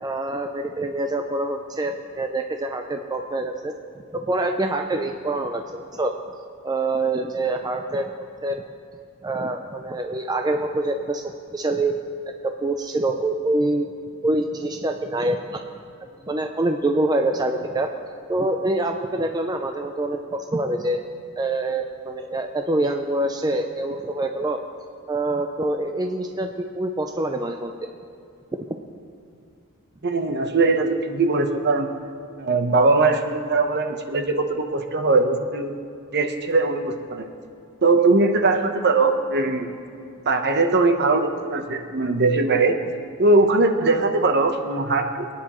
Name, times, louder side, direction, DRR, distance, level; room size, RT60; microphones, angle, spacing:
voice 1, 0.0-3.7 4.1-6.1 6.6-8.1 8.4-8.6 9.2-11.2 11.5-11.9 12.4-13.9 14.2-15.6 16.2-17.9 18.3-21.0 21.4-24.6 25.1-27.7 28.7-28.8, right 2 dB, 20° right, 4 dB, 0.5 m, -25 dB
voice 2, 30.0-31.9 32.4-35.7 36.1-37.3 37.8-39.7 40.3-42.8 43.2-45.3, right 3 dB, 50° right, 6 dB, 1.0 m, -20 dB
22.5 x 9.7 x 3.1 m, 2.5 s
head